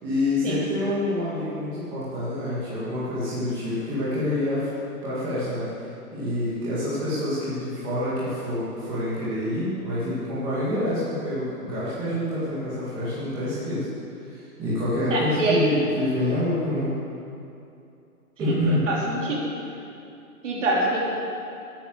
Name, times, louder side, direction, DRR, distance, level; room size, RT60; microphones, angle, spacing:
voice 1, 0.0-4.7 5.0-5.7 6.1-13.9 14.3-16.9 18.4-18.8, left 1 dB, 10° right, -10 dB, 1.8 m, -27 dB
voice 2, 15.1-15.6 18.4-19.5 20.4-21.0, right 2 dB, 55° right, -4 dB, 3.8 m, -25 dB
12.5 x 9.0 x 8.0 m, 2.6 s
hypercardioid pair, 175°, 45 cm